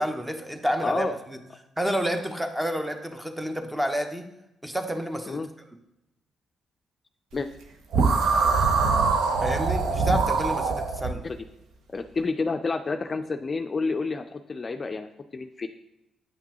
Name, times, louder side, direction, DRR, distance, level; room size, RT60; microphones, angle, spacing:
voice 1, 0.0-1.4 1.8-4.3 4.6-5.4 9.4-11.2, equal, 10° right, 6 dB, 0.9 m, -29 dB
voice 2, 0.8-1.1 5.3-5.5 7.3-7.5 11.2-11.4 11.9-15.7, left 4 dB, 40° left, 7 dB, 0.4 m, -29 dB
sound 1, 7.9-11.1, right 4 dB, 70° right, 0.7 m, -23 dB
7.9 x 5.8 x 2.9 m, 0.88 s
hypercardioid pair, 45°, 0 cm